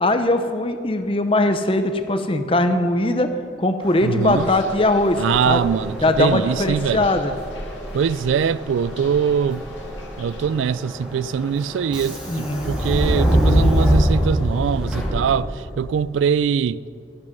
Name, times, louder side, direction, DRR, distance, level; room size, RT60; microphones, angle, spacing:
voice 1, 0.0-3.3 3.6-5.6 6.0-7.3 12.3-12.7, left 2 dB, 30° left, 0.7 m, -20 dB
Subway metro underground, 3.8-15.7, equal, 5° right, 2.6 m, -25 dB
voice 2, 4.0-4.5 5.2-7.1 7.9-9.6 10.2-16.8, right 7 dB, 90° right, 0.3 m, -22 dB
sound 1, 4.2-10.5, left 1 dB, 85° left, 2.0 m, -39 dB
12.5 x 11.5 x 5.2 m
head